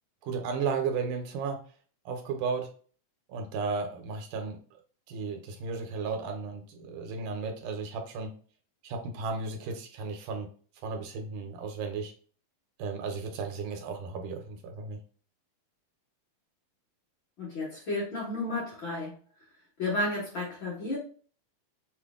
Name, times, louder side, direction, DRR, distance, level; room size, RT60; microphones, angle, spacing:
voice 1, 0.2-1.6 2.1-2.7 3.3-4.6 5.1-8.3 8.8-10.5 10.8-12.1 12.8-15.0, right 5 dB, 80° right, 4 dB, 2.3 m, -34 dB
voice 2, 17.4-19.1 19.8-21.0, left 2 dB, 50° left, -7 dB, 1.6 m, -32 dB
6.3 x 2.2 x 3.5 m, 0.42 s
omnidirectional pair, 3.8 m